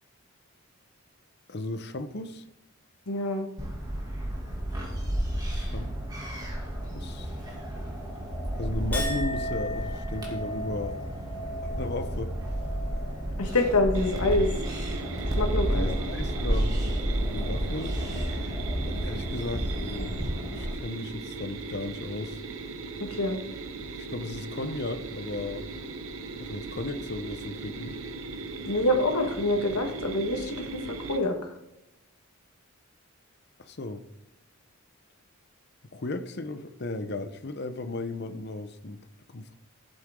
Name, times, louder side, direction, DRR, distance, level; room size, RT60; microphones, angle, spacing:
voice 1, 1.5-2.4 5.2-6.0 6.9-7.4 8.6-11.0 11.7-12.4 15.7-18.0 18.8-20.2 20.5-22.4 24.0-25.7 26.4-28.0 33.6-34.1 35.9-39.5, left 2 dB, 50° left, 0.7 m, -35 dB
voice 2, 3.1-3.5 13.4-14.5 15.4-15.9 23.0-23.4 28.6-30.8 31.1-31.5, left 1 dB, 90° left, 1.6 m, -26 dB
sound 1, 3.6-20.7, right 1 dB, 15° right, 2.3 m, -31 dB
Chink clink, 8.9-15.5 15.9-16.4, equal, 5° left, 2.2 m, -39 dB
sound 2, 13.9-31.2, right 3 dB, 70° right, 0.9 m, -38 dB
14.0 x 7.9 x 3.7 m
head